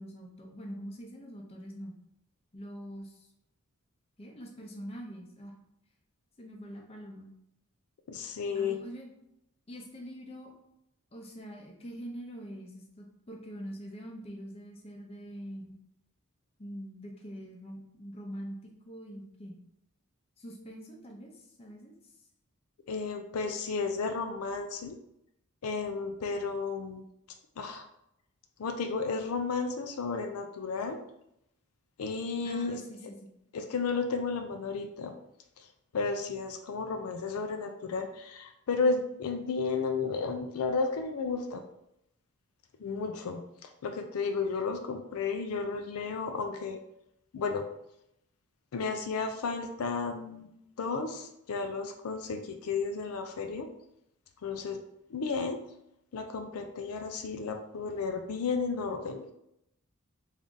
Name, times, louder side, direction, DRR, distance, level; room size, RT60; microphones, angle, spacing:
voice 1, 0.0-2.0 2.5-3.3 4.2-5.5 6.4-7.3 8.5-9.1 9.7-10.5 11.1-15.7 16.6-19.6 20.4-21.9 32.4-33.2, equal, 25° left, 1 dB, 0.6 m, -44 dB
voice 2, 8.1-8.8 22.9-25.0 25.6-27.0 27.6-27.8 28.6-31.0 32.0-32.8 33.5-35.1 35.6-35.7 35.9-41.6 42.8-46.8 47.3-47.7 48.7-53.7 54.4-54.8 55.1-55.6 56.1-59.2, left 4 dB, 80° left, 6 dB, 0.4 m, -33 dB
3.5 x 2.6 x 3.7 m, 0.80 s
head